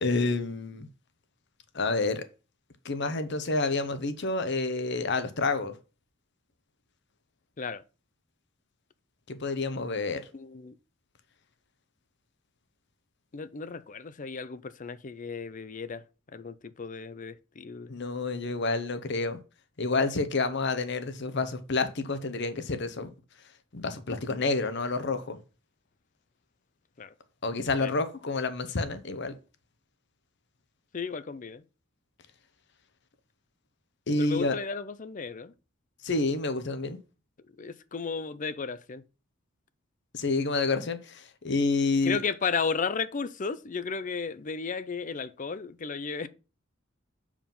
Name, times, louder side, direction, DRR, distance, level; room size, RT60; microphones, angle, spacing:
voice 1, 0.0-0.9 1.7-2.2 2.8-5.8 9.3-10.3 17.9-19.4 19.8-23.1 23.7-25.4 27.4-29.3 34.1-34.6 36.0-37.0 40.1-42.2, left 3 dB, 60° left, 0.9 m, -29 dB
voice 2, 10.3-10.8 13.3-16.0 16.3-17.9 27.0-27.1 27.8-27.9 30.9-31.6 34.2-35.5 37.6-39.0 42.0-46.3, left 5 dB, 40° left, 0.5 m, -34 dB
7.3 x 4.9 x 5.4 m
head